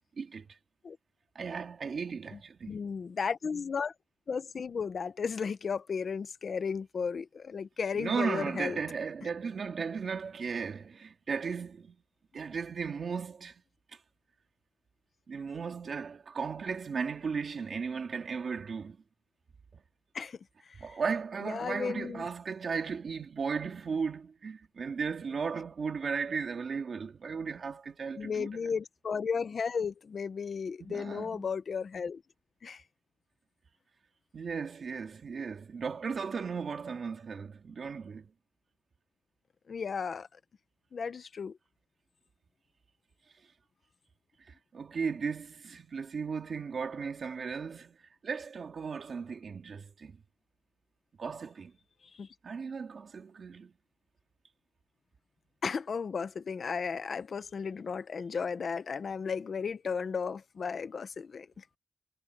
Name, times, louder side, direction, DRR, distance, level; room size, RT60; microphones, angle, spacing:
voice 1, 0.2-0.5 1.3-2.8 7.9-12.0 12.3-13.6 15.3-19.0 19.7-19.8 20.8-28.5 30.8-31.4 34.3-38.3 44.5-48.0 48.2-50.2 51.2-51.7 52.4-53.7, right 5 dB, 80° right, 2.6 m, -36 dB
voice 2, 2.7-3.9 4.3-8.8 20.1-20.4 20.9-21.0 21.4-22.3 28.2-32.2 32.6-32.8 39.7-40.3 40.9-41.6 52.2-52.3 55.6-61.6, left 6 dB, 75° left, 0.9 m, -34 dB
wide cardioid pair, 155°, 0 cm